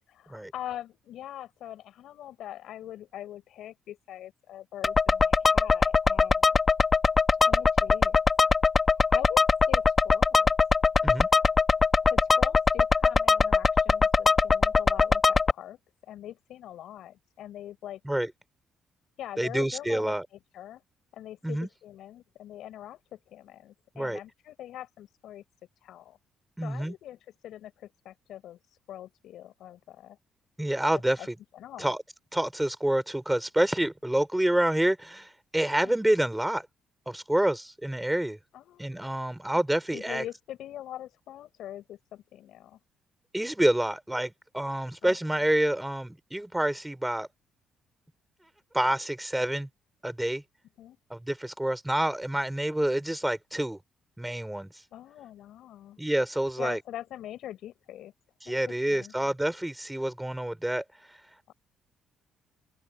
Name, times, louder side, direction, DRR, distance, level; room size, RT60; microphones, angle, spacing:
voice 1, 0.1-6.5 7.4-8.2 8.9-10.5 12.1-18.0 19.2-20.1 20.5-20.8 21.1-25.4 25.8-26.2 26.6-30.2 31.2-31.3 31.5-31.9 35.8-36.2 38.5-39.0 39.9-42.8 45.0-45.2 50.8-51.0 54.9-56.0 56.6-58.1 58.5-58.6 58.9-59.1 61.5-61.6, left 12 dB, 75° left, 7.0 m, -43 dB
sound 1, 4.8-15.5, left 4 dB, 30° left, 1.4 m, -22 dB
voice 2, 19.4-20.3 21.4-21.7 24.0-24.2 26.6-26.9 30.6-31.3 31.8-32.0 32.3-36.7 37.1-38.4 38.8-40.2 43.3-47.3 48.7-49.7 50.0-50.4 51.1-53.8 54.2-54.7 56.0-56.8 58.4-60.8, right 1 dB, 5° right, 3.5 m, -28 dB
open air
cardioid pair, 95°, 0 cm